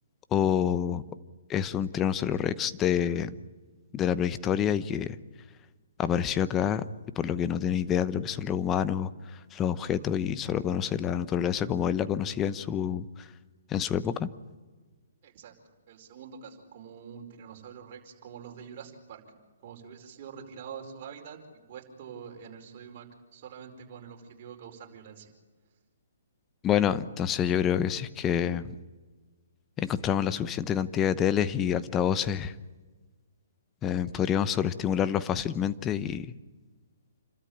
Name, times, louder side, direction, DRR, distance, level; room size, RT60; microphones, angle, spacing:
voice 1, 0.3-1.0 1.5-3.3 3.9-5.2 6.0-6.8 7.2-9.1 9.5-13.1 13.7-14.3 26.6-28.7 29.8-32.5 33.8-36.3, left 9 dB, 20° left, 14 dB, 0.9 m, -27 dB
voice 2, 15.2-15.5 15.9-19.4 19.6-21.4 21.7-23.1 23.3-25.3, right 7 dB, 45° right, 2 dB, 4.9 m, -45 dB
28.5 x 13.0 x 8.7 m, 1.3 s
hypercardioid pair, 145°, 0 cm